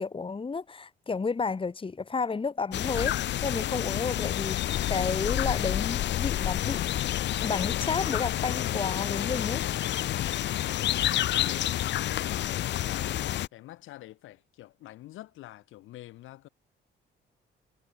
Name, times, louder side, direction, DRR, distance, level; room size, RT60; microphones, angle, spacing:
voice 1, 0.0-6.8 7.4-9.6, left 4 dB, 25° left, 1.8 m, -32 dB
sound 1, 2.7-13.5, left 13 dB, 65° left, 0.6 m, -29 dB
voice 2, 10.6-16.5, left 15 dB, 90° left, 3.5 m, -46 dB
cardioid pair, 90°, 20 cm